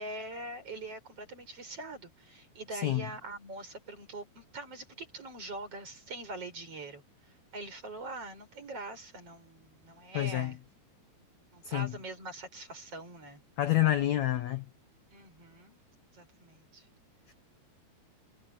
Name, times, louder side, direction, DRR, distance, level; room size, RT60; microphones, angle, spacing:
voice 1, 0.0-10.6 11.5-13.4 15.1-15.8 16.1-16.9, right 2 dB, 35° right, 7.1 m, -43 dB
voice 2, 10.1-10.5 11.6-11.9 13.6-14.6, left 14 dB, 90° left, 1.6 m, -28 dB
omnidirectional pair, 4.7 m